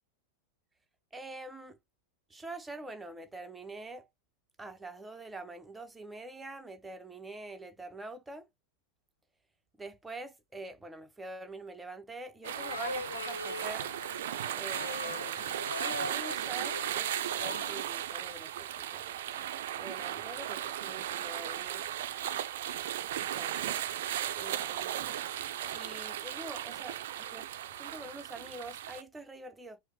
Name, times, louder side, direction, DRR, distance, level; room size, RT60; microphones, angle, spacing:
voice 1, 1.1-1.8 2.3-4.1 4.6-8.5 9.8-14.0 14.6-15.5 15.8-19.1 19.8-21.9 23.3-23.6 24.3-25.1 25.7-29.8, right 2 dB, 10° right, 0.6 m, -45 dB
sound 1, 12.4-17.7, left 2 dB, 80° left, 0.3 m, -41 dB
sound 2, 12.4-29.0, right 11 dB, 55° right, 0.4 m, -36 dB
4.8 x 2.0 x 2.7 m
figure-of-eight pair, 90°, 0 cm